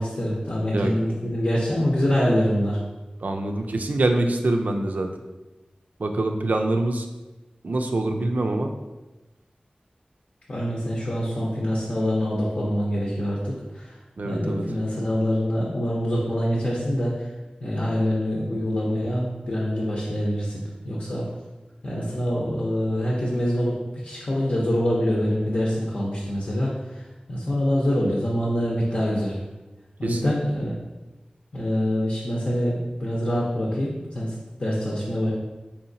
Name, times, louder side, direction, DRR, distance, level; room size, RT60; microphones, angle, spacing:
voice 1, 0.0-2.8 10.5-14.0 14.2-17.3 17.6-21.2 21.8-23.8 24.0-29.4 30.0-30.7 31.5-35.3, equal, 55° left, -5 dB, 0.7 m, -25 dB
voice 2, 3.2-5.1 6.0-7.1 7.6-8.7 14.2-14.6 30.1-30.3, right 2 dB, 70° right, 5 dB, 0.4 m, -24 dB
4.8 x 2.8 x 2.6 m, 1.1 s
wide cardioid pair, 70°, 3 cm